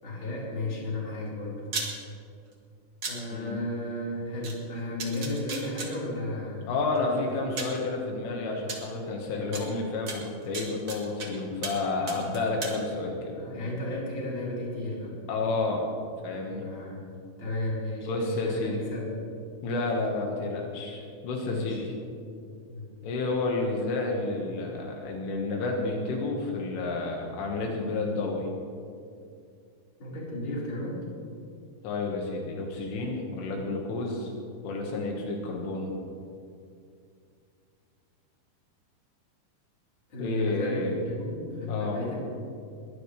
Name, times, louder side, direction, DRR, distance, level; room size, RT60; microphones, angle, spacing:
voice 1, 0.0-1.6 3.1-6.7 7.0-7.7 13.3-15.2 16.6-17.1 17.4-19.2 21.4-21.8 22.7-22.9 30.0-31.0 40.1-42.2, left 1 dB, 25° left, -6 dB, 4.6 m, -34 dB
sound 1, 1.6-1.9 3.0-3.1 4.4-4.5 5.0-5.9 7.0-7.1 7.6-7.8 8.7-8.8 9.5-9.6 10.1-11.3 11.6-11.8 12.1-12.7, right 3 dB, 50° right, 1.6 m, -34 dB
voice 2, 6.7-13.3 15.3-15.9 16.2-16.7 18.1-18.8 19.6-21.9 23.0-28.5 31.8-34.3 34.6-35.9 40.2-40.9 41.7-42.0, left 3 dB, 80° left, 0 dB, 4.1 m, -30 dB
22.5 x 18.0 x 3.4 m, 2.4 s
omnidirectional pair, 5.7 m